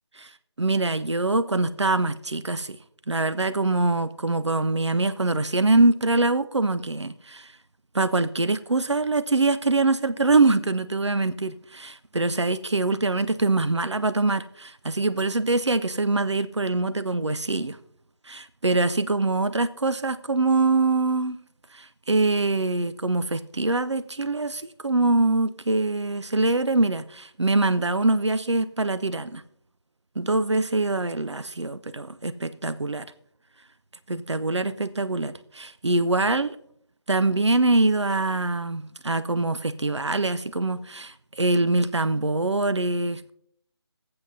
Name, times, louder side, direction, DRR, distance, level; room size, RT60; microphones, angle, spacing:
voice 1, 0.6-2.8 3.1-7.5 7.9-17.8 18.3-21.4 21.7-29.4 30.2-33.1 34.1-36.6 37.1-43.3, right 2 dB, 90° right, 0.5 m, -24 dB
18.0 x 7.7 x 2.7 m
figure-of-eight pair, 160°, 14 cm